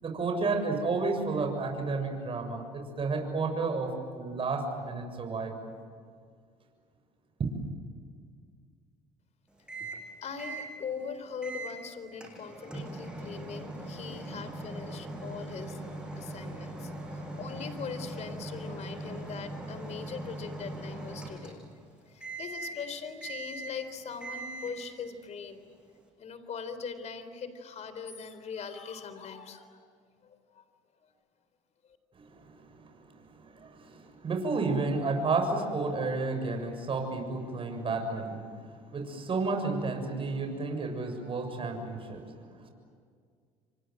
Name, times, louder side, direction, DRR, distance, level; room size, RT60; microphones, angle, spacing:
voice 1, 0.0-5.7 32.1-33.0 33.3-42.7, right 3 dB, 35° right, 4 dB, 6.9 m, -32 dB
Microwave oven, 9.7-10.1 10.4-10.7 11.4-11.8 12.2-21.8 22.2-22.8 23.2-23.9 24.2-24.8, right 2 dB, 5° right, 8.0 m, -40 dB
voice 2, 10.2-15.8 16.1-21.7 22.1-25.6 26.2-29.8 30.2-30.6 31.0-31.1, left 6 dB, 50° left, 11 dB, 3.9 m, -41 dB
29.5 x 25.0 x 7.9 m, 2.1 s
supercardioid pair, 90°, 15 cm